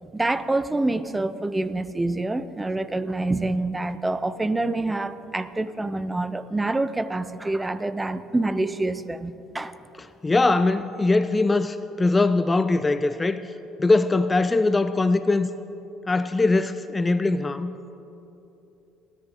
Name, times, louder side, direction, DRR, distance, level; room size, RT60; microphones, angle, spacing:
voice 1, 0.0-9.8, right 2 dB, 15° right, 14 dB, 0.7 m, -26 dB
voice 2, 10.2-13.4 13.8-15.5 16.1-17.7, left 3 dB, 20° left, 12 dB, 0.5 m, -21 dB
29.0 x 11.0 x 3.8 m, 3.0 s
supercardioid pair, 75°, 0 cm